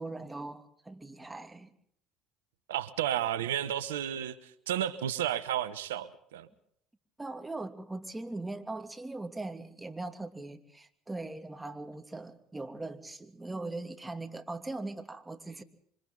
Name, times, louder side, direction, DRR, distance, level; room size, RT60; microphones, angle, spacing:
voice 1, 0.0-1.7 7.2-15.6, right 2 dB, 15° right, 6 dB, 2.7 m, -40 dB
voice 2, 2.7-6.5, right 11 dB, 80° right, 13 dB, 1.1 m, -32 dB
28.0 x 25.0 x 3.9 m, 0.67 s
hypercardioid pair, 65°, 0 cm